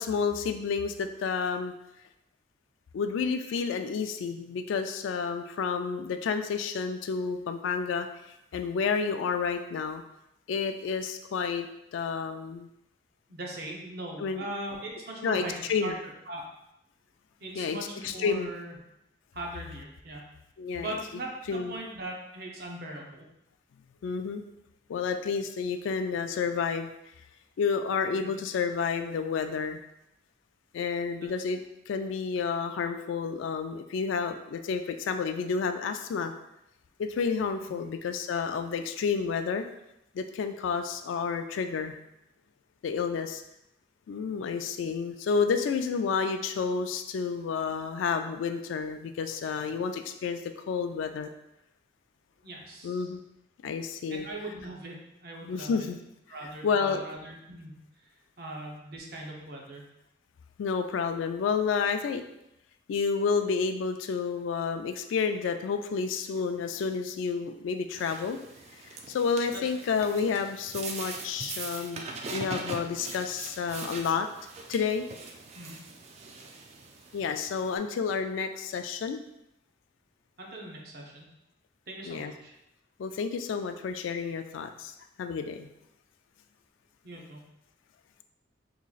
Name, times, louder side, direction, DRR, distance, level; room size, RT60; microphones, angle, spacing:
voice 1, 0.0-1.7 2.9-8.1 8.5-10.0 10.5-11.7 11.9-12.7 14.2-14.5 15.2-15.9 17.6-17.8 18.0-18.5 20.6-21.0 21.5-21.7 24.0-24.4 24.9-26.9 27.6-29.8 30.7-36.3 37.0-39.7 40.1-42.0 42.8-43.4 44.1-50.4 50.7-51.3 52.8-53.2 53.6-54.3 55.4-56.0 56.6-57.0 60.6-62.2 62.9-68.4 68.9-74.3 74.7-75.1 77.1-79.2 82.1-82.3 83.0-85.7, left 5 dB, 90° left, 7 dB, 0.3 m, -30 dB
voice 2, 13.3-15.6 15.8-15.9 16.3-16.5 17.4-18.8 19.3-20.2 20.8-23.2 28.2-28.4 31.2-31.3 37.7-37.9 52.4-53.1 54.1-55.9 56.3-57.8 58.0-58.1 58.4-59.8 69.5-69.6 75.5-75.8 80.4-81.3 81.9-82.6 87.0-87.4, right 1 dB, 55° right, -1 dB, 0.7 m, -40 dB
sound 1, 67.9-77.8, right 3 dB, 35° right, 0.3 m, -42 dB
3.9 x 3.0 x 2.4 m, 0.84 s
head